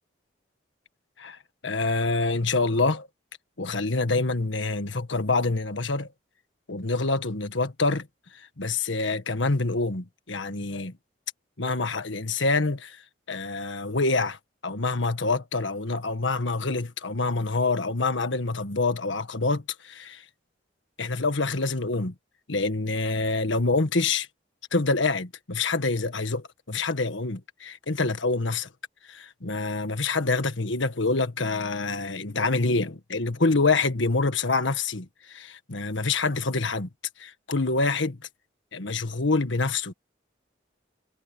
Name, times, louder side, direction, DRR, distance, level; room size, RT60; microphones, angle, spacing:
voice 1, 1.2-3.1 3.6-6.1 6.7-8.1 8.3-10.9 11.6-13.0 13.3-20.2 21.0-22.1 22.5-24.3 24.7-28.7 29.0-36.9 37.2-38.2 38.7-39.9, left 3 dB, 80° left, 1.6 m, -26 dB
head